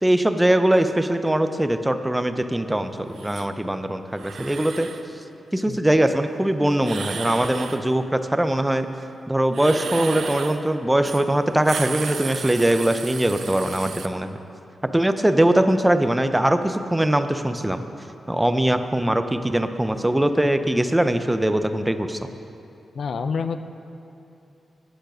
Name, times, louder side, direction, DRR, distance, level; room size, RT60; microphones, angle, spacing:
voice 1, 0.0-4.9 5.5-8.9 9.3-14.4 14.9-17.8 18.3-22.3, right 1 dB, 10° right, 9 dB, 0.5 m, -21 dB
sound 1, 3.2-3.5 4.1-5.0 6.8-7.8 9.5-10.6 11.0-11.3 11.5-14.1, right 6 dB, 70° right, 0.5 m, -33 dB
voice 2, 22.9-23.6, left 5 dB, 60° left, 10 dB, 0.4 m, -27 dB
9.8 x 9.2 x 6.0 m, 2.7 s
wide cardioid pair, 125°, 0 cm